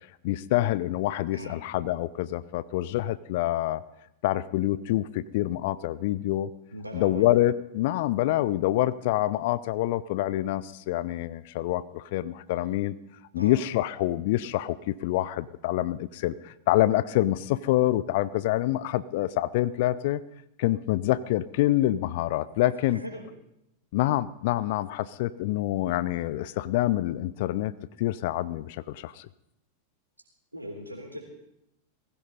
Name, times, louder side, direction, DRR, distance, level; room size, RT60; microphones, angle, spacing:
voice 1, 0.2-3.8 4.2-6.5 6.9-13.0 13.3-20.2 20.6-23.0 23.9-27.7 28.0-29.3, left 15 dB, 50° left, 18 dB, 0.5 m, -26 dB
voice 2, 6.7-7.3 13.4-13.5 22.9-23.2 30.5-31.2, equal, 85° right, -1 dB, 3.5 m, -39 dB
19.5 x 16.0 x 4.1 m, 0.81 s
figure-of-eight pair, 90°, 0 cm